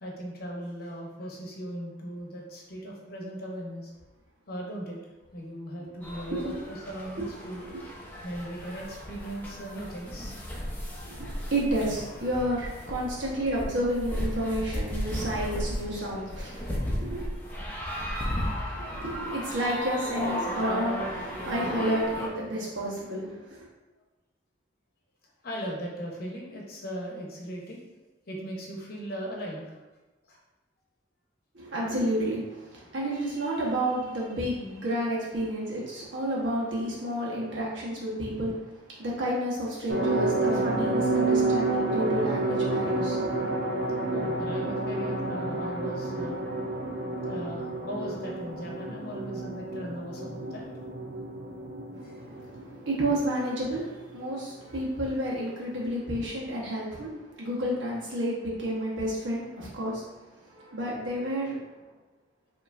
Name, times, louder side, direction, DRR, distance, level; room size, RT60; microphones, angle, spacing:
voice 1, 0.0-3.9 4.5-5.0 5.3-7.7 8.2-10.5 18.5-18.9 25.4-27.8 28.3-29.8 30.3-30.4 44.1-46.6 47.2-50.7 52.0-52.2, equal, 55° left, -1 dB, 0.9 m, -38 dB
sound 1, 6.0-22.3, equal, 10° left, 0.7 m, -35 dB
voice 2, 11.0-17.3 18.7-23.6 31.5-43.4 51.9-61.6, right 1 dB, 80° right, -5 dB, 1.3 m, -31 dB
sound 2, 39.9-54.0 54.3-54.4 54.7-54.8, right 2 dB, 60° right, 0.7 m, -30 dB
5.0 x 3.0 x 2.5 m, 1.1 s
head